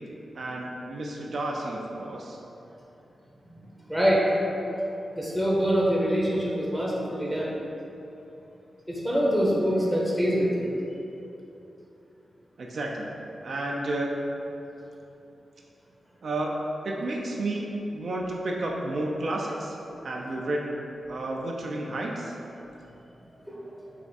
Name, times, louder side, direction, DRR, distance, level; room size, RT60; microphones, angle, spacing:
voice 1, 0.3-2.4 12.6-13.1 13.4-14.1 16.2-16.5 16.8-19.8 20.0-20.7 21.1-22.3, right 2 dB, 65° right, -1 dB, 0.4 m, -31 dB
voice 2, 3.9-4.3 5.2-7.5 8.9-10.7 23.5-23.6, equal, ahead, -5 dB, 0.7 m, -24 dB
3.4 x 2.4 x 4.0 m, 2.9 s
cardioid pair, 60°, 0 cm